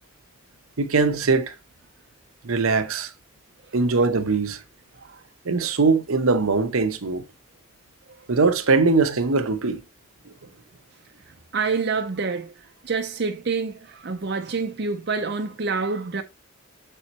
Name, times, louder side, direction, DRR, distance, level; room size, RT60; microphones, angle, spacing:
voice 1, 0.8-1.5 2.4-3.1 3.7-4.6 5.5-7.2 8.3-9.8, right 4 dB, 85° right, 0.9 m, -21 dB
voice 2, 11.5-12.5 12.8-16.2, right 4 dB, 55° right, 0.6 m, -27 dB
7.0 x 4.4 x 4.1 m
head